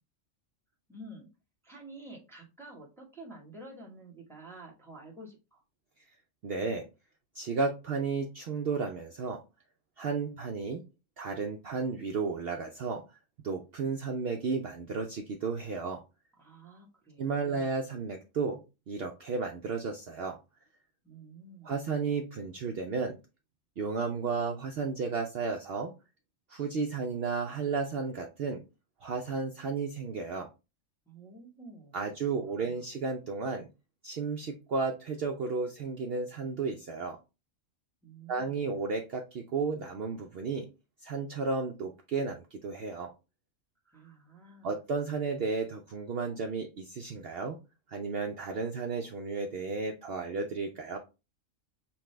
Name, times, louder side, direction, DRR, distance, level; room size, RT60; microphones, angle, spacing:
voice 1, 0.9-1.3 1.6-5.6 16.4-17.8 21.0-21.8 31.1-31.9 32.3-32.9 38.0-38.6 43.8-44.8, right 2 dB, ahead, -3 dB, 1.0 m, -50 dB
voice 2, 6.4-6.9 7.3-9.4 10.0-10.8 11.2-13.0 13.4-16.0 17.2-18.6 18.9-20.4 21.6-23.2 23.8-25.9 26.5-28.6 29.0-30.5 31.9-33.7 34.0-37.2 38.3-40.7 41.0-43.1 44.6-47.6 47.9-51.0, right 4 dB, 60° right, 3 dB, 0.7 m, -33 dB
5.7 x 2.2 x 3.2 m, 0.29 s
omnidirectional pair, 1.4 m